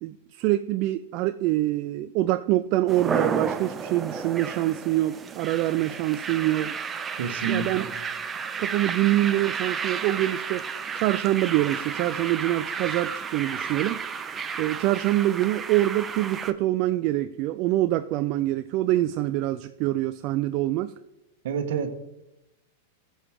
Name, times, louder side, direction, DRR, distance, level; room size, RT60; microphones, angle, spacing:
voice 1, 0.0-6.8 7.5-7.9 8.6-10.7 10.9-14.0 14.6-20.9, right 15 dB, 50° right, 0.4 m, -25 dB
sound 1, 2.9-16.5, right 6 dB, 20° right, 0.8 m, -32 dB
voice 2, 7.1-7.9 21.4-21.9, right 6 dB, 70° right, 1.3 m, -29 dB
15.5 x 7.0 x 3.7 m
hypercardioid pair, 110°, 0 cm